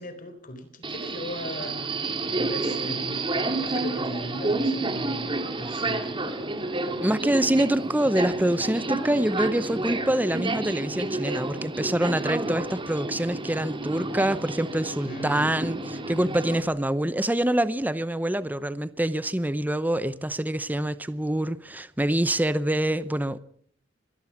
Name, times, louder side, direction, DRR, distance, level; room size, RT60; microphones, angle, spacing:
voice 1, 0.0-1.9 2.4-7.0 15.1-15.5, left 1 dB, 45° left, 4.2 m, -38 dB
Subway metro underground, 0.8-16.6, right 2 dB, 25° right, 2.4 m, -30 dB
voice 2, 7.0-23.4, right 1 dB, 10° right, 0.8 m, -25 dB
24.0 x 18.5 x 5.9 m
head